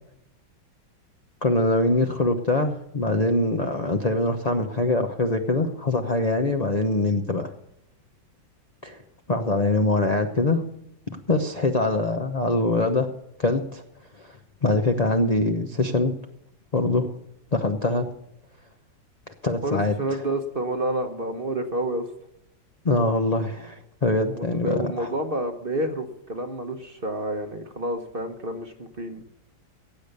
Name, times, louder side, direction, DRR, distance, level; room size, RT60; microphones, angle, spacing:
voice 1, 1.4-7.5 8.8-9.0 9.3-10.6 11.1-13.1 13.4-13.8 14.6-16.1 16.7-17.1 17.5-18.1 19.4-19.9 22.8-25.1, left 2 dB, 40° left, 4 dB, 0.5 m, -23 dB
voice 2, 19.6-22.1 24.3-29.3, right 1 dB, 35° right, 6 dB, 1.0 m, -29 dB
16.0 x 8.6 x 6.6 m, 0.81 s
omnidirectional pair, 2.1 m